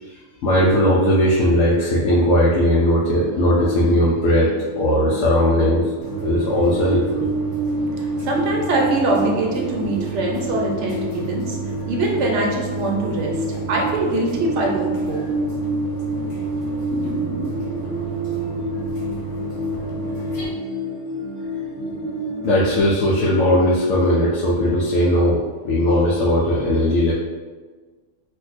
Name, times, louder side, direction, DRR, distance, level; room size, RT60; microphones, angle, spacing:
voice 1, 0.4-4.5 4.8-5.9 6.2-7.3 16.9-17.5 22.4-27.1, equal, 80° left, -5 dB, 0.9 m, -18 dB
sound 1, 3.2-22.8, right 1 dB, 15° right, 0.8 m, -28 dB
sound 2, 6.0-20.5, right 7 dB, 40° left, 0.5 m, -33 dB
voice 2, 8.2-11.6 11.8-15.2, right 2 dB, 70° right, -1 dB, 0.9 m, -23 dB
2.5 x 2.2 x 4.0 m, 1.4 s
omnidirectional pair, 1.3 m